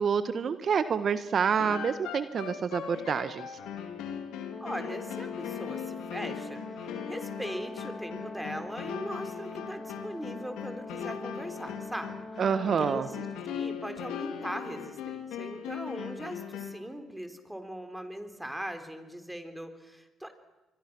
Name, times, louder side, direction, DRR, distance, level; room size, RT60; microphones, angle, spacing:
voice 1, 0.0-3.5 12.4-13.1, right 6 dB, 55° right, 12 dB, 1.3 m, -28 dB
sound 1, 1.6-16.9, left 8 dB, 75° left, 3.0 m, -39 dB
Brass instrument, 4.5-13.4, left 2 dB, 20° left, 3.3 m, -43 dB
voice 2, 4.6-12.3 12.8-13.3 13.5-20.3, right 1 dB, 5° right, 8 dB, 3.8 m, -40 dB
28.0 x 23.0 x 6.2 m, 1.1 s
hypercardioid pair, 55°, 0 cm